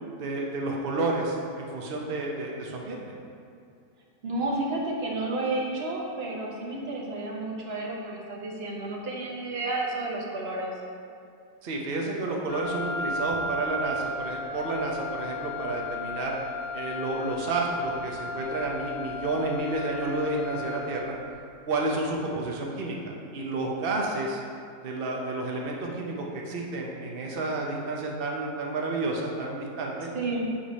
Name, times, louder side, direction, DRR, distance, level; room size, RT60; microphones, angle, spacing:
voice 1, 0.2-3.0 11.6-16.4 16.7-21.1 21.7-24.4 24.8-30.1, right 2 dB, 85° right, -1 dB, 0.5 m, -30 dB
voice 2, 4.2-10.7 30.1-30.5, right 2 dB, 45° right, -2 dB, 0.9 m, -31 dB
Wind instrument woodwind instrument, 12.5-21.2, left 2 dB, 70° left, 1.2 m, -35 dB
7.6 x 3.4 x 5.1 m, 2.4 s
omnidirectional pair, 1.9 m